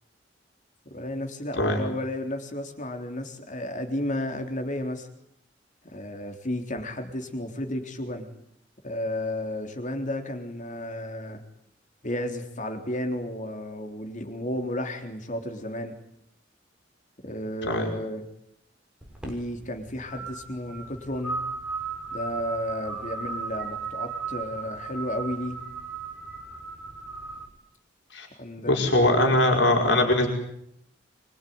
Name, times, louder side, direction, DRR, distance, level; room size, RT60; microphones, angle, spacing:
voice 1, 0.9-5.1 5.8-8.3 8.8-11.4 12.0-15.9 17.2-18.2 19.2-21.4 22.1-25.6 28.3-29.3, left 1 dB, 45° left, 6 dB, 3.8 m, -33 dB
sound 1, 19.0-27.5, right 4 dB, 5° right, 6.8 m, -36 dB
voice 2, 28.7-30.3, left 1 dB, 70° left, 2 dB, 5.3 m, -21 dB
25.5 x 24.0 x 9.6 m, 0.75 s
head